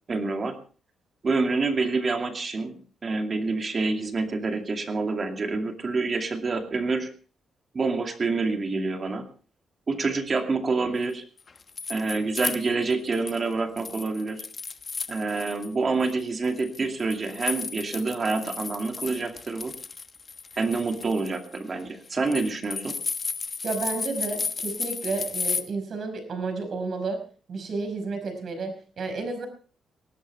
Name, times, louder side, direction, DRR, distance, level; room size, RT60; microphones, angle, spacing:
voice 1, 0.1-0.6 1.2-7.1 7.7-9.3 9.9-11.2 11.9-14.4 15.1-19.7 20.5-23.0, right 3 dB, 30° right, 5 dB, 2.4 m, -27 dB
sound 1, 11.4-13.4 13.8-15.7 16.0-25.6, left 4 dB, 30° left, 1.1 m, -34 dB
voice 2, 23.6-27.2 27.5-29.5, right 3 dB, 45° right, 6 dB, 5.3 m, -31 dB
20.0 x 17.5 x 3.4 m, 0.38 s
cardioid pair, 165°, 0 cm